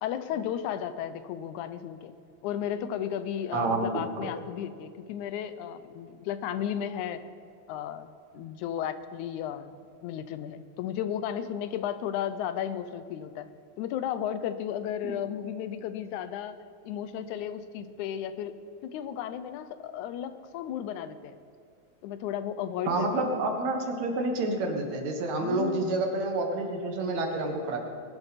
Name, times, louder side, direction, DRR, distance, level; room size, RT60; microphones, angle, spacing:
voice 1, 0.0-2.1 2.4-7.2 7.7-9.8 10.0-13.5 13.8-16.6 16.8-21.4 22.0-23.3 25.4-25.9, left 9 dB, 90° left, 12 dB, 2.1 m, -34 dB
voice 2, 3.5-4.3 15.0-15.1 22.9-27.8, right 2 dB, 70° right, 3 dB, 2.7 m, -29 dB
20.5 x 11.5 x 4.2 m, 2.2 s
omnidirectional pair, 3.3 m